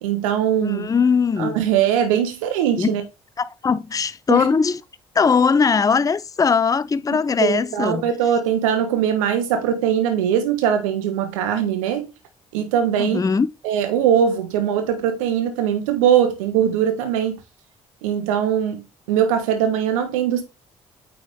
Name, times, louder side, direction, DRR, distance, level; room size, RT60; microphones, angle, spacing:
voice 1, 0.0-0.9 1.4-3.0 4.3-4.5 7.4-12.1 12.5-13.3 13.6-17.4 18.0-20.4, right 9 dB, 75° right, 1.1 m, -21 dB
voice 2, 0.6-1.6 2.8-2.9 3.4-4.8 5.2-8.1 13.0-13.5, left 5 dB, 20° left, 0.5 m, -20 dB
8.9 x 3.7 x 3.6 m
figure-of-eight pair, 45°, 17 cm